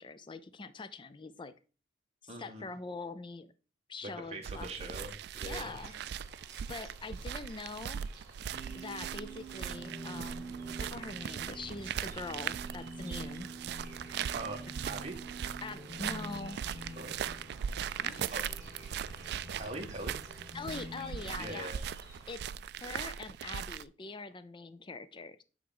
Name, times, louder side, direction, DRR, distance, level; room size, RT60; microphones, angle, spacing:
voice 1, 0.0-1.5 2.2-3.5 3.9-5.1 5.4-5.9 6.7-8.0 8.7-10.5 10.8-13.5 15.6-16.6 18.0-18.4 20.5-21.7 22.3-22.4 22.8-25.4, left 3 dB, 30° left, 13 dB, 0.5 m, -43 dB
voice 2, 2.3-2.7 4.0-5.7 14.3-15.2 17.0-17.2 18.3-18.5 19.6-20.2 21.4-21.8, right 2 dB, 35° right, 2 dB, 1.5 m, -42 dB
sound 1, 4.4-23.8, right 8 dB, 65° right, 0.3 m, -40 dB
sound 2, 5.3-22.3, right 2 dB, 20° right, 2.4 m, -56 dB
sound 3, 8.5-21.7, right 2 dB, ahead, 1.7 m, -47 dB
9.3 x 3.6 x 3.9 m, 0.35 s
head